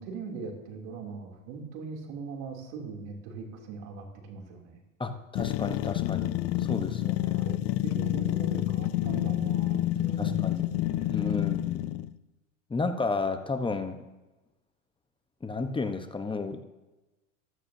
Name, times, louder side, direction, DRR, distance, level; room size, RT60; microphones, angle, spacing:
voice 1, 0.0-4.8 6.7-7.1 7.3-11.3, right 5 dB, 60° right, 1 dB, 3.0 m, -40 dB
voice 2, 5.0-6.3 6.6-7.4 10.2-10.7 11.1-12.0 12.7-14.0 15.4-16.6, left 3 dB, 10° left, 8 dB, 1.0 m, -32 dB
sound 1, 5.4-12.1, left 15 dB, 35° left, 0.5 m, -28 dB
15.5 x 13.5 x 2.8 m, 1.1 s
hypercardioid pair, 105°, 41 cm